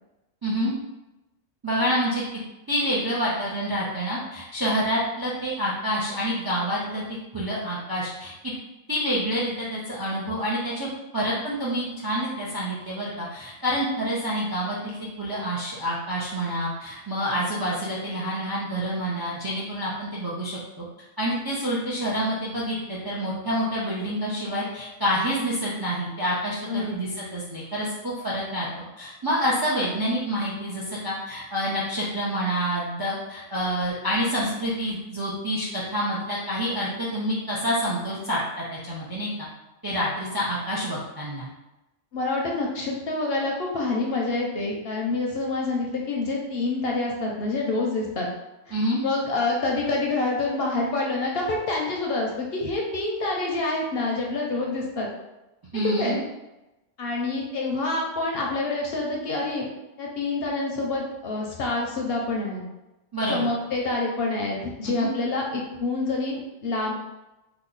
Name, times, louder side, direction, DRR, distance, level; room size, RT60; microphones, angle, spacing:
voice 1, 0.4-0.7 1.6-2.2 2.7-8.5 8.9-20.8 21.2-39.3 39.8-41.5 48.7-49.0 55.7-56.2 63.1-63.5 64.8-65.1, equal, 35° right, -6 dB, 0.4 m, -27 dB
voice 2, 42.1-48.3 48.7-48.8 49.0-55.1 55.8-56.2 57.0-59.7 60.0-62.6 63.3-66.9, left 2 dB, 60° left, -1 dB, 0.7 m, -27 dB
2.9 x 2.1 x 3.8 m, 0.99 s
omnidirectional pair, 1.3 m